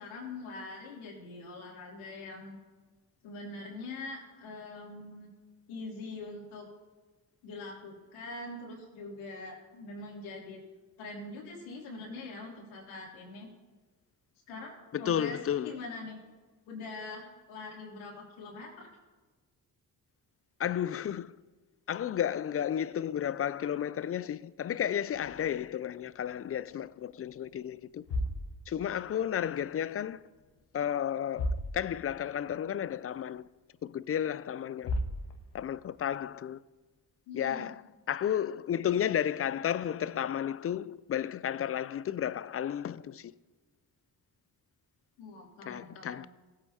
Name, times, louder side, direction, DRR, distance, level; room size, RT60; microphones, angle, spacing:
voice 1, 0.0-2.6 3.2-5.3 5.7-6.7 7.4-10.6 11.0-13.5 14.5-15.4 15.6-16.2 16.7-18.9 37.3-37.7 45.2-46.3, left 3 dB, 80° left, 3.0 m, -43 dB
voice 2, 14.9-15.7 20.6-21.3 21.9-28.0 28.7-30.2 30.7-33.5 33.8-34.9 35.5-36.6 37.3-37.8 38.1-43.3 45.7-46.3, left 9 dB, 30° left, 0.4 m, -32 dB
sound 1, 25.1-26.8 27.1-27.4 27.9-29.7 30.0-30.7 30.9-31.0 31.3-32.3 32.6-32.7 33.4-33.5 34.5-34.6 34.8-35.8, left 1 dB, 65° left, 1.4 m, -37 dB
18.5 x 8.7 x 2.8 m
hypercardioid pair, 40°, 47 cm